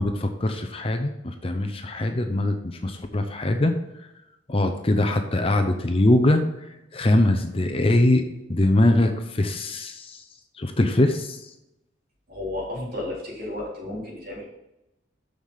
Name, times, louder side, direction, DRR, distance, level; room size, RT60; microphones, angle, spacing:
voice 1, 0.0-2.5 2.8-3.7 4.5-6.4 6.9-10.2 10.6-11.5, left 1 dB, 30° left, 6 dB, 0.6 m, -22 dB
voice 2, 12.3-14.4, left 1 dB, 50° right, -5 dB, 3.6 m, -32 dB
7.0 x 6.6 x 5.6 m, 0.93 s
head